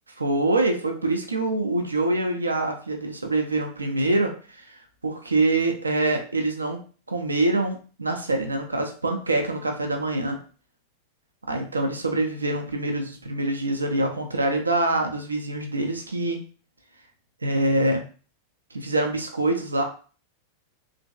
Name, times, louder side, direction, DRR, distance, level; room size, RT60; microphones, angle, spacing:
voice 1, 0.2-4.8 5.0-6.8 7.1-10.4 11.5-16.4 17.4-18.1 18.7-19.8, right 2 dB, 80° right, 4 dB, 0.4 m, -25 dB
2.9 x 2.6 x 2.2 m, 0.39 s
figure-of-eight pair, 90°, 0 cm